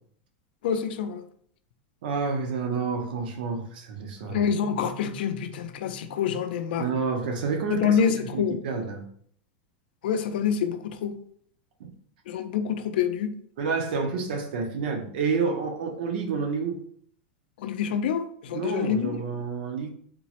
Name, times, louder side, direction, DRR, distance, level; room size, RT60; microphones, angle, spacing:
voice 1, 0.6-1.2 4.3-6.9 7.7-8.6 10.0-11.2 12.3-13.3 17.6-19.2, left 7 dB, 75° left, 0.4 m, -26 dB
voice 2, 2.0-4.5 6.8-8.0 8.3-9.1 11.8-11.9 13.6-16.8 18.5-19.9, right 5 dB, 70° right, 0.6 m, -29 dB
3.7 x 2.0 x 2.8 m
supercardioid pair, 160°, 5 cm